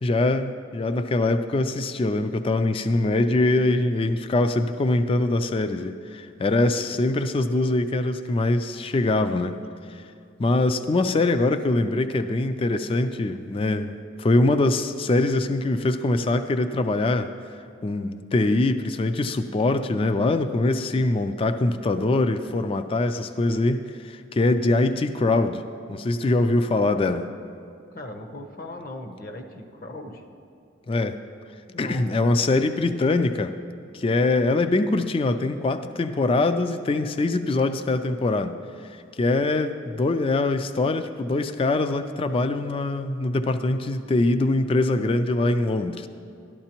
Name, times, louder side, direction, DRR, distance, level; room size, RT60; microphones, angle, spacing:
voice 1, 0.0-9.6 10.4-13.9 14.2-17.3 17.8-25.6 25.9-27.3 30.9-31.2 31.8-33.6 33.9-38.6 39.2-46.1, left 2 dB, 30° left, 10 dB, 0.3 m, -23 dB
voice 2, 27.9-30.2 31.7-32.1, left 1 dB, 50° left, 4 dB, 0.8 m, -38 dB
12.5 x 12.0 x 2.9 m, 2.4 s
head